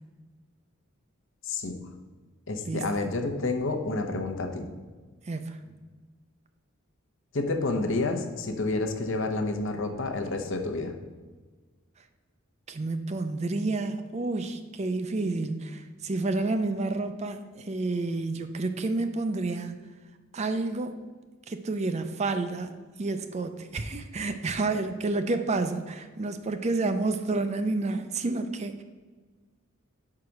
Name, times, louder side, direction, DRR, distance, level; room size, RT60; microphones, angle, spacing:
voice 1, 1.5-1.8 2.5-4.7 7.3-10.9, left 2 dB, 60° left, 5 dB, 0.8 m, -29 dB
voice 2, 5.3-5.7 12.7-19.7 20.3-21.0 21.5-22.7 23.0-28.8, right 3 dB, 30° right, 8 dB, 0.4 m, -30 dB
5.2 x 4.8 x 5.8 m, 1.4 s
head